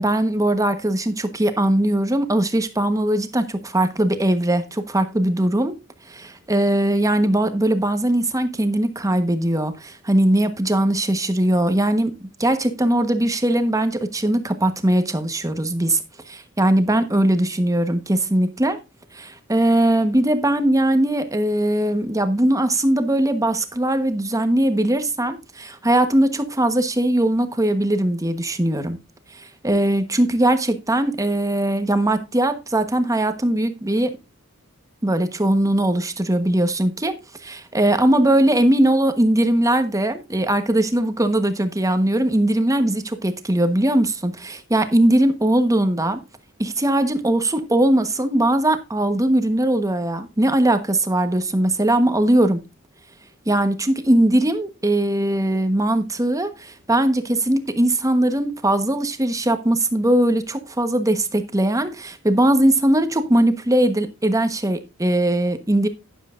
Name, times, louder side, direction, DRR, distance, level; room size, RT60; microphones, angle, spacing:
voice 1, 0.0-5.8 6.1-12.1 12.4-16.0 16.3-18.8 19.1-29.0 29.3-34.1 35.0-37.1 37.4-46.2 46.6-52.6 53.5-65.9, right 1 dB, 15° right, 1.1 m, -20 dB
12.0 x 10.0 x 2.5 m
head